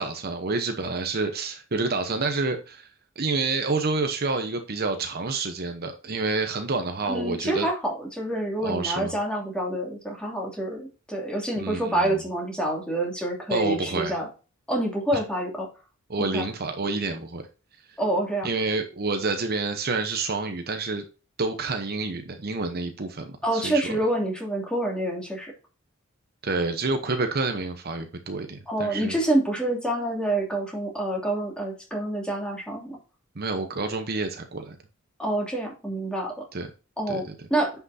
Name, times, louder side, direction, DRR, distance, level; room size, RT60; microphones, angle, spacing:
voice 1, 0.0-2.9 3.2-7.7 8.6-9.1 11.6-12.2 13.5-14.2 15.1-15.2 16.1-17.4 18.4-21.0 21.4-24.0 26.4-29.2 33.4-34.7 36.5-36.7 37.1-37.3, right 3 dB, 50° right, 6 dB, 0.9 m, -28 dB
voice 2, 7.1-14.3 14.7-15.7 16.2-16.4 18.0-18.5 23.4-25.5 28.7-33.0 35.2-36.5 37.0-37.2 37.5-37.7, right 1 dB, 5° left, -1 dB, 2.8 m, -27 dB
9.7 x 5.9 x 2.8 m, 0.34 s
head